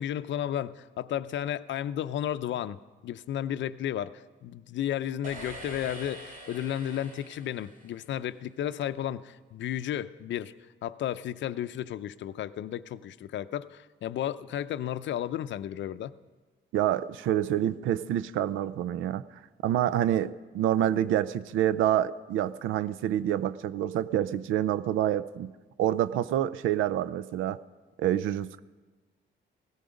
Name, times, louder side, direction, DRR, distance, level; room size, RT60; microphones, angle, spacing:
voice 1, 0.0-10.5 10.8-16.1, left 11 dB, 65° left, 14 dB, 0.6 m, -33 dB
sound 1, 5.2-8.4, right 2 dB, 45° right, 4.4 m, -45 dB
voice 2, 16.7-19.2 19.6-25.5 25.8-27.6 28.0-28.6, right 11 dB, 85° right, 16 dB, 0.5 m, -27 dB
17.0 x 14.0 x 5.1 m, 1.3 s
cardioid pair, 90°, 20 cm